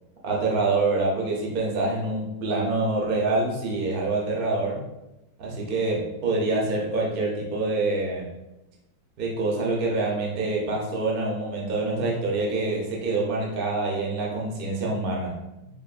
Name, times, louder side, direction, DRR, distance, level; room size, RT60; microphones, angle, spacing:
voice 1, 0.2-4.8 5.4-8.3 9.2-15.7, right 2 dB, 60° right, -2 dB, 0.5 m, -26 dB
4.9 x 2.4 x 2.4 m, 0.91 s
omnidirectional pair, 2.0 m